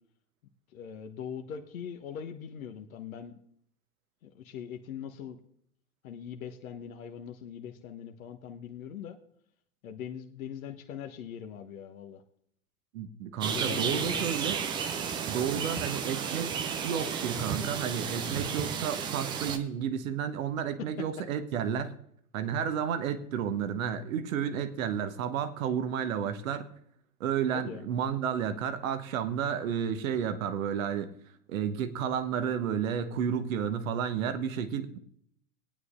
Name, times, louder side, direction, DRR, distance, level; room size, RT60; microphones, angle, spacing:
voice 1, 0.7-3.3 4.2-5.4 6.0-9.2 9.8-12.2 13.5-14.3 27.5-27.9, left 8 dB, 60° left, 4 dB, 1.2 m, -41 dB
voice 2, 12.9-14.6 15.2-16.5 16.8-21.9 22.3-26.7 27.2-31.1 31.5-35.0, right 8 dB, 55° right, 9 dB, 1.3 m, -31 dB
sound 1, 13.4-19.6, right 7 dB, 10° right, 0.4 m, -33 dB
20.0 x 9.4 x 2.6 m, 0.68 s
figure-of-eight pair, 95°, 47 cm